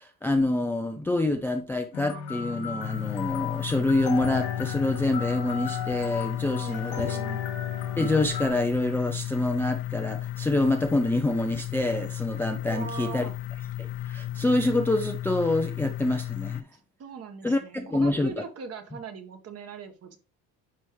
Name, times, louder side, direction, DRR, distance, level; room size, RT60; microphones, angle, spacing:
voice 1, 0.0-7.2 8.0-13.2 13.8-16.7 17.4-18.3, left 2 dB, 5° left, 0.4 m, -26 dB
sound 1, 1.9-8.5, left 7 dB, 90° left, 2.7 m, -35 dB
sound 2, 2.8-16.6, left 13 dB, 55° left, 0.7 m, -33 dB
voice 2, 6.6-7.4 12.6-13.4 16.7-20.2, right 5 dB, 40° right, 1.3 m, -40 dB
9.9 x 4.8 x 3.1 m
cardioid pair, 145°, 39 cm